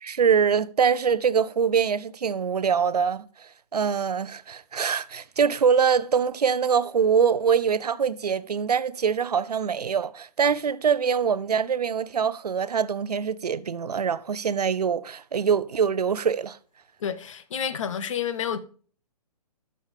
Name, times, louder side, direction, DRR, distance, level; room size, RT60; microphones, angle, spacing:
voice 1, 0.0-16.6, right 6 dB, 75° right, 0.6 m, -24 dB
voice 2, 17.0-18.6, left 8 dB, 50° left, 0.8 m, -29 dB
13.5 x 6.5 x 3.3 m
figure-of-eight pair, 130°, 20 cm